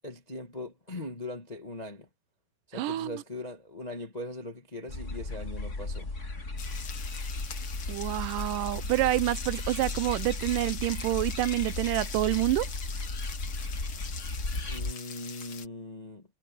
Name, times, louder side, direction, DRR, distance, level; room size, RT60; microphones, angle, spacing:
voice 1, 0.0-2.1 2.7-6.1 14.6-16.2, left 2 dB, 85° left, 0.3 m, -40 dB
voice 2, 2.7-3.2 7.9-12.7, right 17 dB, 75° right, 2.2 m, -28 dB
sound 1, 4.9-14.9, left 2 dB, 25° left, 1.8 m, -35 dB
sound 2, 6.6-15.7, left 7 dB, 45° left, 2.1 m, -43 dB
omnidirectional pair, 4.1 m